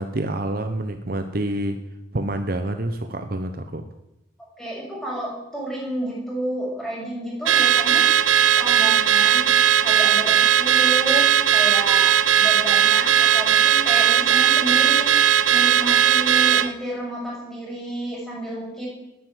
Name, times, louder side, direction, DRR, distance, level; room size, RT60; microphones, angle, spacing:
voice 1, 0.0-1.8 2.1-3.9, right 1 dB, 50° right, 8 dB, 0.9 m, -27 dB
voice 2, 4.6-8.1 8.6-9.5 9.8-15.1 15.5-18.9, right 1 dB, ahead, -4 dB, 6.3 m, -31 dB
Car / Alarm, 7.5-16.7, right 9 dB, 85° right, 0.8 m, -17 dB
12.5 x 9.9 x 9.2 m, 0.92 s
head